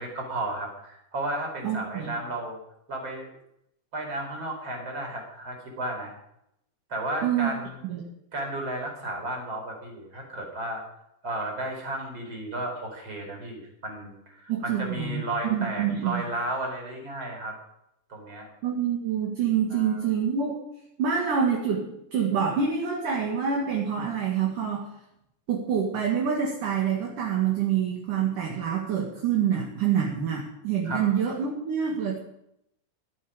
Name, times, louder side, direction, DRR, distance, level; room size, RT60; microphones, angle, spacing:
voice 1, 0.0-2.6 2.9-3.4 3.9-6.1 6.9-7.8 8.3-10.8 11.2-17.5 18.1-18.5 19.7-20.0 30.9-31.0, right 1 dB, 30° right, 1 dB, 4.6 m, -33 dB
voice 2, 1.6-2.1 7.2-7.5 7.9-8.0 14.5-16.2 18.6-20.6 21.0-24.9 25.5-32.2, right 7 dB, 55° right, -1 dB, 3.1 m, -26 dB
17.5 x 12.5 x 5.0 m, 0.78 s
omnidirectional pair, 5.0 m